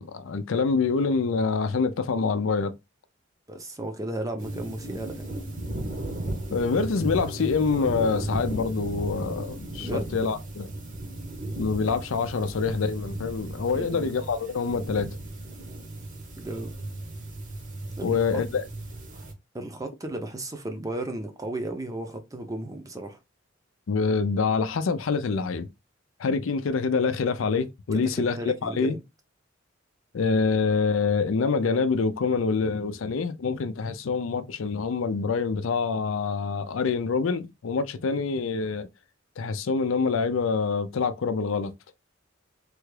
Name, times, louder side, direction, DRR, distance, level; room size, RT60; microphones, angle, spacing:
voice 1, 0.0-2.7 6.5-10.7 11.6-15.1 18.0-18.6 23.9-25.7 26.2-29.0 30.1-38.9 39.4-41.7, left 4 dB, 80° left, 0.5 m, -26 dB
voice 2, 3.5-5.2 9.8-10.1 13.7-14.1 16.4-16.7 18.0-18.4 19.5-23.2 27.9-29.0, right 1 dB, 15° right, 0.6 m, -34 dB
sound 1, 4.4-19.3, right 1 dB, 40° right, 0.9 m, -36 dB
3.4 x 2.3 x 3.2 m
head